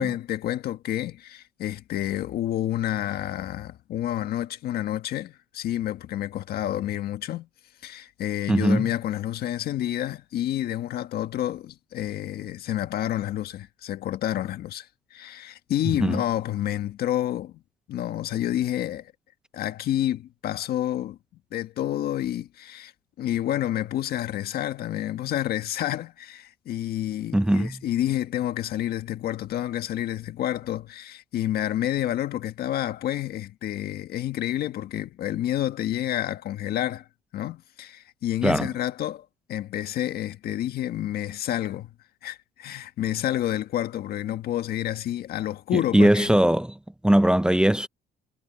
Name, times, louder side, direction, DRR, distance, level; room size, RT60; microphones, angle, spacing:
voice 1, 0.0-7.5 7.8-17.6 17.9-19.1 19.5-21.2 21.5-22.9 23.2-37.1 37.3-41.9 42.2-46.3, left 12 dB, 65° left, 1.6 m, -29 dB
voice 2, 8.5-8.9 16.0-16.2 27.3-27.8 38.4-38.7 45.7-46.8 47.0-47.9, right 1 dB, 5° right, 0.7 m, -20 dB
cardioid pair, 110°, 17 cm